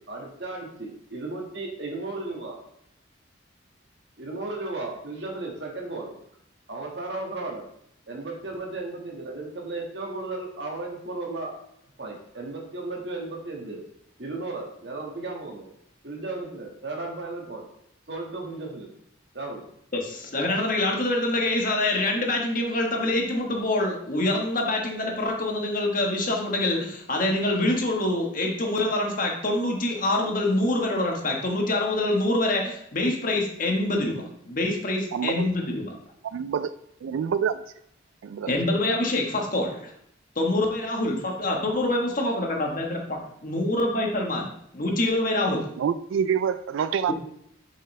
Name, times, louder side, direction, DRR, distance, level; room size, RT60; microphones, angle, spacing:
voice 1, 0.0-2.6 4.2-6.2 6.7-7.7 8.1-11.5 12.0-13.8 14.2-15.7 16.0-17.6 18.1-18.9 19.3-19.6, right 2 dB, 60° right, 0 dB, 1.7 m, -35 dB
voice 2, 19.9-35.9 38.5-39.9 40.3-45.7, left 2 dB, 45° left, 1 dB, 1.4 m, -25 dB
voice 3, 35.1-35.5 36.2-36.7 37.0-37.6 38.2-38.5 45.8-47.1, right 7 dB, 90° right, 13 dB, 0.3 m, -26 dB
7.4 x 5.5 x 3.3 m, 0.71 s
head